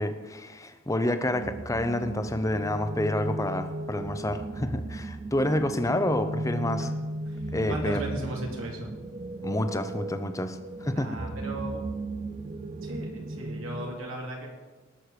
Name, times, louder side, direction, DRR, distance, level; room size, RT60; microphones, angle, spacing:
voice 1, 0.0-6.9 7.5-8.0 9.4-11.1, left 1 dB, 15° left, 9 dB, 0.7 m, -29 dB
sound 1, 1.2-14.0, right 2 dB, 30° right, 0.4 m, -36 dB
voice 2, 7.2-8.9 10.9-11.8 12.8-14.5, right 1 dB, 85° right, 0 dB, 2.7 m, -36 dB
19.0 x 6.6 x 4.9 m, 1.3 s
head